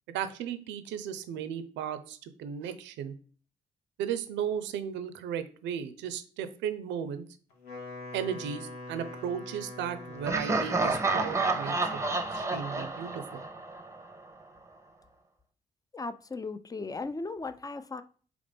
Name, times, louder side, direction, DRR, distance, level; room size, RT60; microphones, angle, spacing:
voice 1, 0.1-3.1 4.0-7.2 8.1-12.0 12.3-13.4, right 8 dB, 70° right, 0.5 m, -35 dB
Wind instrument woodwind instrument, 7.5-11.4, left 2 dB, 80° left, 0.9 m, -44 dB
Laughter, 10.2-14.1, right 3 dB, 15° right, 0.7 m, -30 dB
voice 2, 15.9-18.0, left 3 dB, 20° left, 0.4 m, -37 dB
3.8 x 3.0 x 3.4 m
hypercardioid pair, 40°, 19 cm